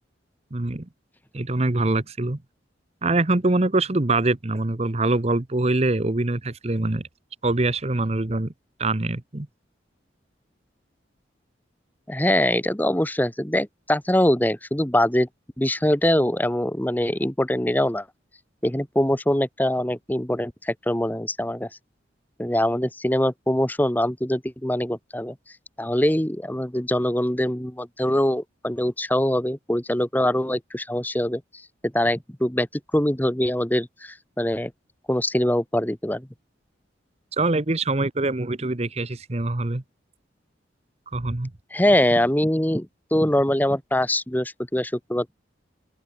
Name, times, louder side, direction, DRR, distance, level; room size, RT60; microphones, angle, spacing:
voice 1, 0.5-0.9 1.3-2.4 3.0-7.0 7.4-8.5 8.8-9.5 37.3-39.8 41.1-41.5, right 2 dB, 35° right, 1.0 m, -24 dB
voice 2, 12.1-15.3 15.6-18.0 18.6-21.7 22.4-25.3 25.8-31.4 31.8-32.7 32.9-34.7 35.1-36.3 41.7-42.9 43.1-45.3, left 1 dB, 10° left, 1.3 m, -23 dB
open air
head